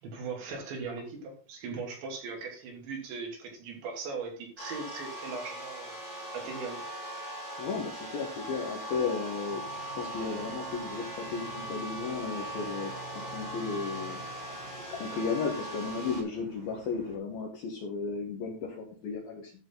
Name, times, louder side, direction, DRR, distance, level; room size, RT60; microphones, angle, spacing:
voice 1, 0.0-6.0 6.3-6.8, right 4 dB, 65° right, 4.9 m, -39 dB
sound 1, 4.6-16.2, right 1 dB, 40° left, 6.1 m, -40 dB
voice 2, 7.6-9.6 10.0-12.9 13.2-14.3 14.9-19.5, left 5 dB, 65° left, 2.6 m, -34 dB
sound 2, 9.5-17.2, right 5 dB, 50° right, 7.0 m, -49 dB
12.5 x 7.2 x 3.9 m
omnidirectional pair, 5.8 m